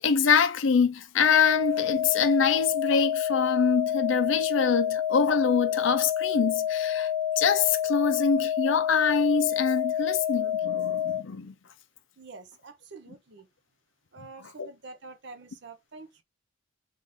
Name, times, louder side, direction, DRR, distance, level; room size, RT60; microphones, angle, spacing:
voice 1, 0.0-7.1 7.4-11.5 14.6-14.7, left 5 dB, 70° left, 0.5 m, -25 dB
sound 1, 1.2-11.2, left 10 dB, 30° right, 1.3 m, -28 dB
voice 2, 12.2-13.5 14.1-16.2, right 3 dB, 55° right, 0.7 m, -47 dB
3.8 x 2.5 x 3.4 m
head